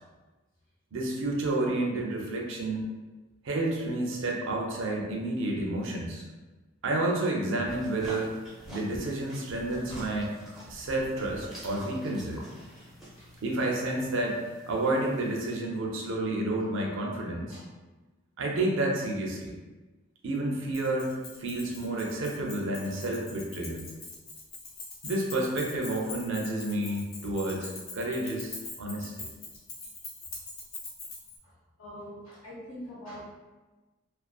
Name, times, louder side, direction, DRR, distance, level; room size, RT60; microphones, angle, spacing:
voice 1, 0.9-2.9 3.4-6.2 6.8-8.4 8.7-10.3 10.7-12.4 13.4-17.6 18.4-19.5 20.2-21.1 21.4-23.9 25.0-29.3, right 2 dB, 60° right, 0 dB, 0.4 m, -30 dB
sound 1, 7.6-15.5, equal, ahead, 0.5 m, -47 dB
Keys jangling, 20.7-31.4, left 3 dB, 45° left, 0.6 m, -43 dB
voice 2, 31.4-33.2, equal, 75° left, -6 dB, 1.0 m, -44 dB
2.4 x 2.3 x 2.3 m, 1.2 s
head